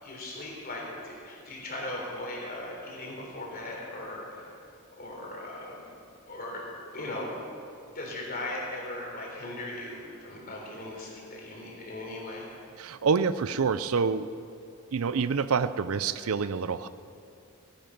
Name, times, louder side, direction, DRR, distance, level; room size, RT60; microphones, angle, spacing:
voice 1, 0.0-4.6 5.0-5.8 6.3-6.7 6.9-7.3 7.9-12.5, left 1 dB, 40° left, -2 dB, 3.7 m, -38 dB
voice 2, 12.8-14.3 14.9-16.9, right 5 dB, 75° right, 14 dB, 0.5 m, -27 dB
17.5 x 10.5 x 6.0 m, 2.5 s
head